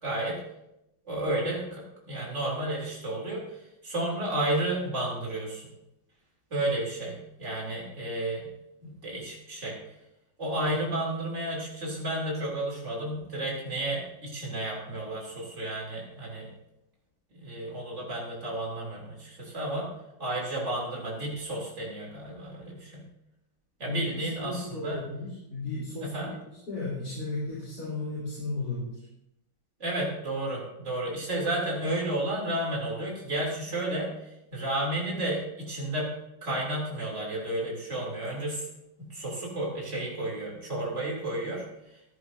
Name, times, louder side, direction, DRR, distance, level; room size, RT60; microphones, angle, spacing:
voice 1, 0.0-0.4 1.1-5.7 6.5-8.5 8.8-9.8 10.4-16.5 17.3-19.9 20.2-23.0 23.8-25.0 26.0-26.3 29.8-36.1 36.4-38.7 39.0-41.6, right 1 dB, 40° right, -3 dB, 3.5 m, -32 dB
voice 2, 23.8-26.1 26.7-29.0, left 2 dB, 55° left, -9 dB, 3.9 m, -34 dB
14.0 x 10.5 x 2.8 m, 0.86 s
omnidirectional pair, 2.0 m